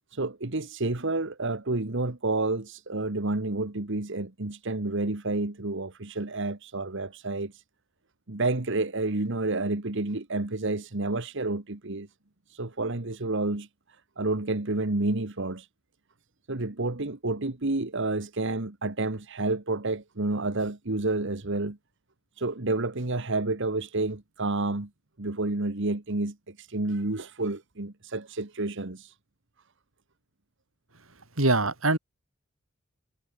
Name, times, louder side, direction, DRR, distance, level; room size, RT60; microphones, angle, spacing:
voice 1, 0.1-7.6 8.3-12.1 12.5-13.7 14.2-15.7 16.5-21.8 22.4-24.9 25.2-29.1, right 2 dB, 65° right, 1.7 m, -29 dB
voice 2, 31.4-32.0, right 2 dB, 85° right, 5.6 m, -23 dB
head